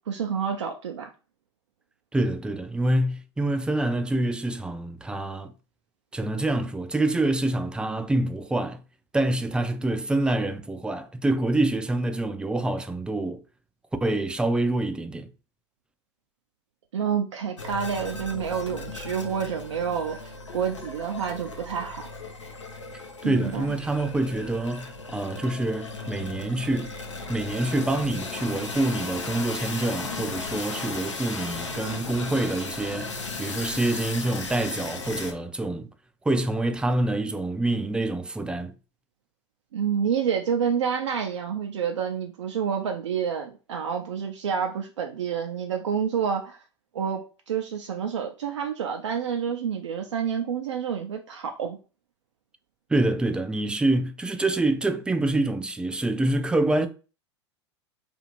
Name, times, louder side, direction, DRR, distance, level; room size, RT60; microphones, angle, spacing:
voice 1, 0.1-1.1 16.9-22.0 23.2-23.7 39.7-46.6 46.9-51.8, right 7 dB, 80° right, 0.4 m, -28 dB
voice 2, 2.1-5.5 6.1-8.8 9.1-13.4 14.0-15.3 23.2-26.9 27.3-35.9 36.2-38.7 52.9-56.9, right 2 dB, 5° right, 0.3 m, -26 dB
sound 1, 17.6-35.3, left 3 dB, 85° left, 0.6 m, -36 dB
2.5 x 2.4 x 2.9 m
hypercardioid pair, 90°, 15 cm